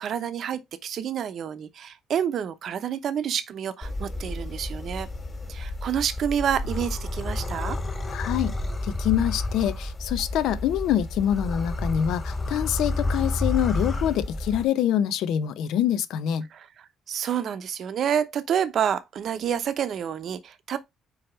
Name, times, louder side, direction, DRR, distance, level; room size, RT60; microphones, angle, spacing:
voice 1, 0.0-5.1 5.5-7.8 16.5-20.8, right 8 dB, 50° right, 0.7 m, -28 dB
sound 1, 3.8-14.7, left 2 dB, 20° left, 1.7 m, -30 dB
voice 2, 8.1-8.5 8.8-16.4, left 10 dB, 75° left, 0.7 m, -25 dB
4.9 x 4.3 x 4.4 m
cardioid pair, 145°, 0 cm